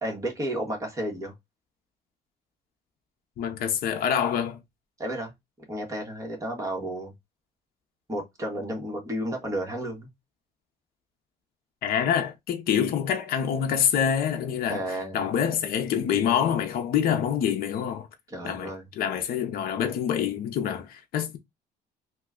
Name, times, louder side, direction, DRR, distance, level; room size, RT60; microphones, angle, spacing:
voice 1, 0.0-1.3 5.0-5.3 5.7-7.1 8.1-10.1 14.7-15.2 18.3-18.8, right 1 dB, 20° right, 1.4 m, -32 dB
voice 2, 3.4-4.6 11.8-14.8 15.1-18.1 18.4-21.4, left 8 dB, 60° left, 0.7 m, -26 dB
3.0 x 2.3 x 3.6 m
cardioid pair, 110°, 17 cm